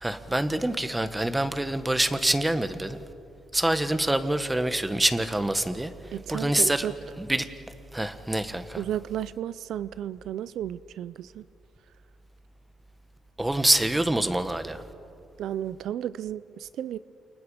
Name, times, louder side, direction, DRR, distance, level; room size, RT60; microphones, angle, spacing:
voice 1, 0.0-3.0 3.5-5.9 6.3-6.9 7.2-7.5 7.9-8.8 13.4-14.8, right 1 dB, 10° right, 10 dB, 1.6 m, -26 dB
voice 2, 6.1-6.9 8.8-11.5 15.4-17.0, right 11 dB, 75° right, 16 dB, 0.5 m, -33 dB
29.0 x 28.5 x 5.1 m, 2.5 s
cardioid pair, 90°, 0 cm